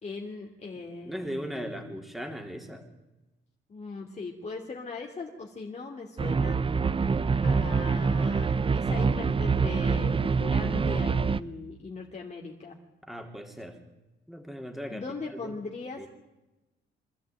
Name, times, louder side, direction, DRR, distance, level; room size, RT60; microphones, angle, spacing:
voice 1, 0.0-2.0 3.7-6.6 7.4-12.8 14.9-16.1, left 3 dB, 35° left, 0 dB, 2.8 m, -39 dB
voice 2, 1.0-2.8 13.0-13.8 14.3-15.0 15.3-15.5 16.0-16.1, equal, ahead, 4 dB, 3.9 m, -38 dB
sound 1, 6.2-11.4, right 5 dB, 25° right, 0.8 m, -25 dB
25.0 x 13.0 x 9.1 m, 1.0 s
cardioid pair, 90°, 20 cm